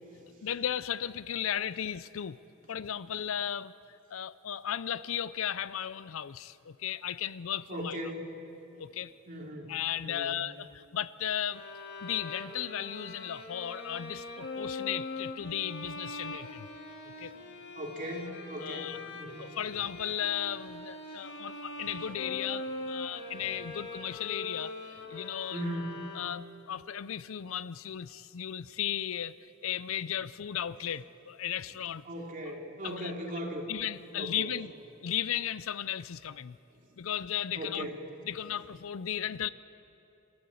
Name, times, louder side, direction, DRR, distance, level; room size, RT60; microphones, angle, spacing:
voice 1, 0.4-2.4 2.7-3.7 4.1-8.0 8.8-9.1 9.7-11.6 12.0-16.7 17.0-17.4 18.6-19.1 19.4-25.6 26.1-29.4 29.6-32.0 32.8-33.1 33.7-34.7 35.0-36.6 37.0-37.9 38.3-39.5, left 10 dB, 70° left, 17 dB, 0.5 m, -35 dB
voice 2, 7.7-8.3 9.3-10.3 17.1-17.4 17.7-19.5 23.3-23.5 25.5-25.9 32.1-33.7 34.1-34.5 37.5-38.0, equal, 40° right, -1 dB, 3.0 m, -38 dB
sound 1, 11.5-26.6, left 2 dB, 50° left, 2.1 m, -42 dB
28.0 x 12.0 x 8.4 m, 2.9 s
head